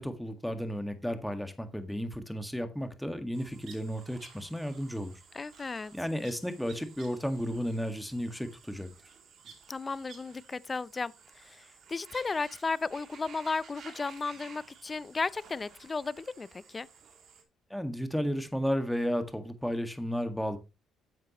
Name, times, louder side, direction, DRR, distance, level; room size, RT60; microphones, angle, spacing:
voice 1, 0.0-5.2 5.9-8.9 17.7-20.6, equal, 5° left, 1.8 m, -33 dB
sound 1, 3.3-17.4, right 6 dB, 60° right, 2.8 m, -54 dB
voice 2, 5.3-5.9 9.7-16.9, left 4 dB, 30° left, 0.5 m, -34 dB
11.0 x 7.5 x 3.0 m
supercardioid pair, 80°, 0 cm